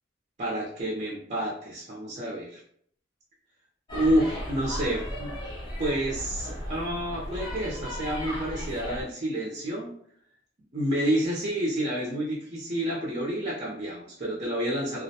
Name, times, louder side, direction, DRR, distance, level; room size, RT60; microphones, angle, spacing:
voice 1, 0.4-2.6 3.9-5.3 5.8-9.9 10.7-15.0, right 1 dB, 40° right, -5 dB, 0.6 m, -29 dB
sound 1, 3.9-9.0, equal, 25° left, 0.6 m, -36 dB
2.4 x 2.1 x 2.7 m, 0.64 s
head